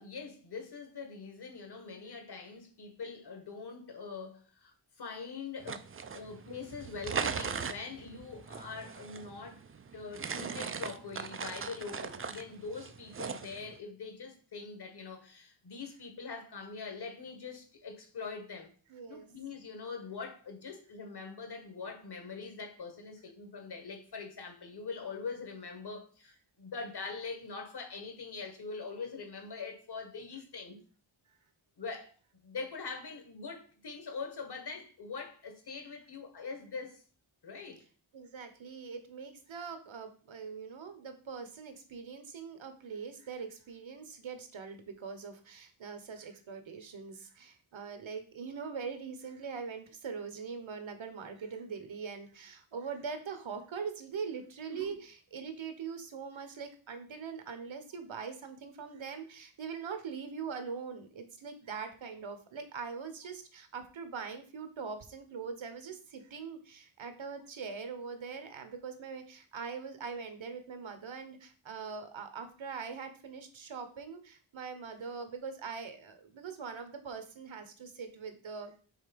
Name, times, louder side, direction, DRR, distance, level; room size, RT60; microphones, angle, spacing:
voice 1, 0.0-5.9 6.1-9.6 9.9-18.7 19.1-30.8 31.8-32.1 32.4-37.0 37.4-37.8 54.7-55.0, left 4 dB, 50° left, 1.5 m, -43 dB
sound 1, 5.6-13.8, right 6 dB, 30° right, 0.3 m, -40 dB
voice 2, 18.9-19.3 38.1-78.7, right 5 dB, 70° right, 1.1 m, -42 dB
5.6 x 3.9 x 5.2 m
wide cardioid pair, 140°, 49 cm